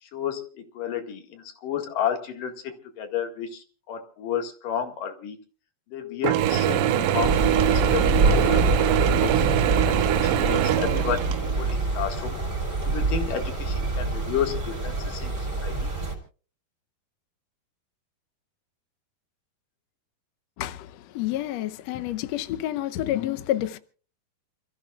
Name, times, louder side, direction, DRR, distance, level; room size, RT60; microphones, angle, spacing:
voice 1, 0.0-5.4 5.9-8.7 9.0-9.5 9.9-11.3 11.5-12.4 12.9-15.9, left 9 dB, 65° left, 3.4 m, -32 dB
Mechanisms / Drill, 6.2-11.7, right 11 dB, 80° right, 2.6 m, -23 dB
Thunder / Rain, 7.2-16.1, right 3 dB, 25° right, 4.6 m, -26 dB
voice 2, 20.6-23.8, left 13 dB, 90° left, 1.4 m, -29 dB
29.0 x 14.5 x 2.4 m
omnidirectional pair, 4.1 m